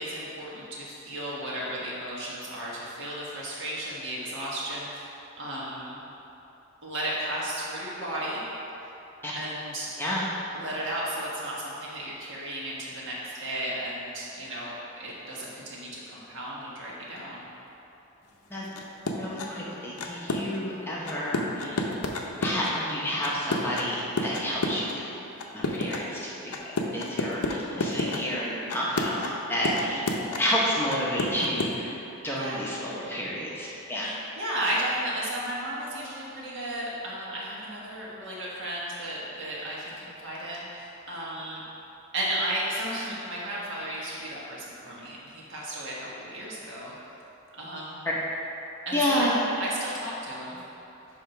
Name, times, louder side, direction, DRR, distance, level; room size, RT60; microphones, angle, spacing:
voice 1, 0.0-6.0 6.8-8.4 9.3-9.9 10.5-17.4 32.4-32.7 34.0-41.6 42.1-46.9 47.6-48.1 48.8-49.3 49.6-50.6, right 1 dB, 55° right, -6 dB, 1.5 m, -34 dB
sound 1, 18.6-19.5 20.0-20.6 21.1-22.7 23.2-24.9 25.4-26.0 26.5-28.2 28.7-29.4 29.6-30.6 30.9-31.7, left 2 dB, 90° left, 0.7 m, -29 dB
voice 2, 19.1-21.8 22.4-25.1 25.5-26.5 26.9-30.1 30.4-32.0 32.2-34.1 48.9-49.4, equal, 10° left, -6 dB, 0.7 m, -30 dB
8.4 x 2.9 x 5.8 m, 3.0 s
head